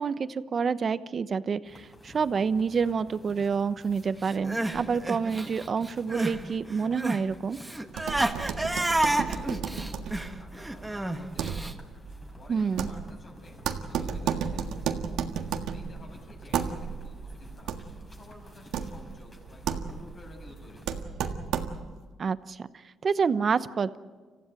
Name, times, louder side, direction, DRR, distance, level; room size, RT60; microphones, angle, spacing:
voice 1, 0.0-7.6 12.5-12.9 22.2-22.7 23.0-24.0, right 5 dB, 45° right, 13 dB, 0.9 m, -28 dB
sound 1, 1.6-21.0, left 1 dB, 25° left, 5.6 m, -52 dB
Crying sobbing, 4.3-6.4 6.7-11.7, right 1 dB, 10° right, 1.7 m, -30 dB
sound 2, 7.9-22.0, right 7 dB, 85° right, 1.6 m, -34 dB
voice 2, 8.2-11.7 12.4-14.9 15.7-21.2, left 2 dB, 45° left, 3 dB, 7.2 m, -52 dB
26.5 x 15.5 x 9.1 m, 1.4 s
cardioid pair, 90°, 0 cm